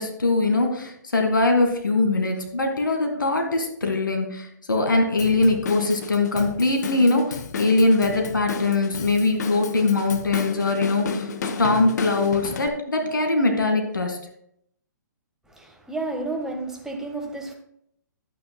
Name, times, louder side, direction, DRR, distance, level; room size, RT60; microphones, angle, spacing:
voice 1, 0.0-11.3 11.6-14.2, left 2 dB, 85° left, 2.0 m, -22 dB
Drum kit / Drum, 5.2-12.7, left 5 dB, 60° left, 1.0 m, -32 dB
voice 2, 15.5-17.5, right 2 dB, 5° right, 1.4 m, -31 dB
11.5 x 9.0 x 2.3 m
hypercardioid pair, 130°, 10 cm